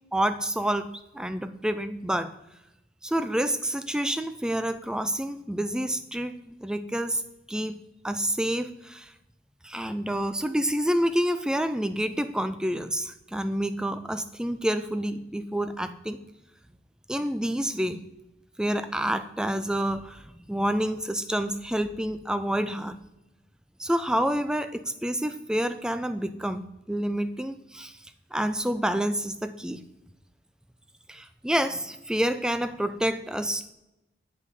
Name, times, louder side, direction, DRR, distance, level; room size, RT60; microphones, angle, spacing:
voice 1, 0.1-0.9 1.1-2.3 3.0-7.2 7.5-7.7 8.0-9.1 9.6-16.2 17.1-18.0 18.6-20.2 20.5-23.0 23.8-26.6 26.9-28.0 28.3-29.8 31.1-33.7, right 1 dB, 5° right, 11 dB, 0.3 m, -28 dB
8.3 x 5.4 x 4.8 m, 0.93 s
head